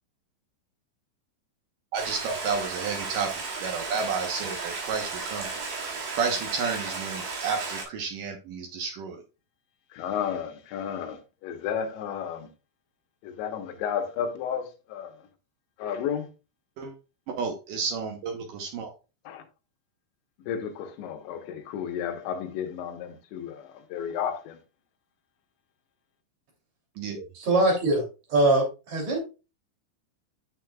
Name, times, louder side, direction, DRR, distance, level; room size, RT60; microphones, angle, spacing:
voice 1, 1.9-3.3 3.6-5.5 6.1-9.2 16.8-16.9 17.3-18.9 27.0-27.2, right 5 dB, 85° right, 1.8 m, -31 dB
Stream, 2.0-7.8, right 4 dB, 65° right, 3.9 m, -34 dB
voice 2, 9.9-12.5 13.2-15.1 15.8-16.3 19.3-19.4 20.5-24.6, left 8 dB, 80° left, 3.3 m, -32 dB
voice 3, 27.3-28.0 28.3-29.2, right 2 dB, 40° right, 3.7 m, -22 dB
10.0 x 6.3 x 2.3 m
omnidirectional pair, 5.3 m